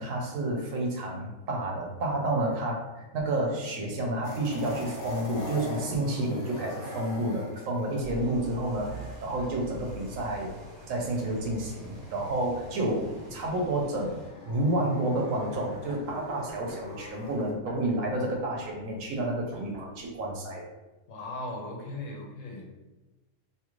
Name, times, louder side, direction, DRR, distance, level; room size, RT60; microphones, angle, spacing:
voice 1, 0.0-10.5 10.9-20.7, right 1 dB, 85° right, 0 dB, 1.1 m, -30 dB
sound 1, 4.2-17.5, left 1 dB, 30° left, 0.7 m, -44 dB
sound 2, 8.0-14.3, right 2 dB, 55° right, 0.8 m, -45 dB
sound 3, 15.3-20.3, equal, 5° left, 1.1 m, -48 dB
voice 2, 21.1-22.8, left 2 dB, 75° left, 0 dB, 1.0 m, -38 dB
2.7 x 2.4 x 3.0 m, 1.1 s
omnidirectional pair, 1.3 m